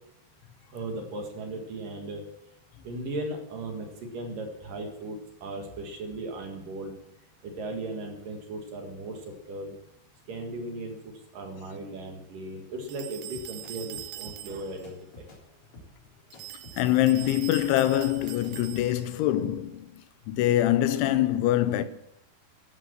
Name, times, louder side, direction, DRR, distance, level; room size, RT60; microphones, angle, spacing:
voice 1, 0.7-2.2 2.8-3.9 4.1-7.0 7.4-9.7 10.3-15.3, right 2 dB, 55° right, 2.9 m, -37 dB
sound 1, 12.9-14.9 16.3-19.2, right 15 dB, 80° right, 3.1 m, -43 dB
sound 2, 13.3-18.9, left 1 dB, 30° left, 4.1 m, -51 dB
voice 2, 16.8-19.9 20.3-21.9, left 13 dB, 85° left, 3.1 m, -24 dB
13.0 x 10.5 x 7.5 m
omnidirectional pair, 5.4 m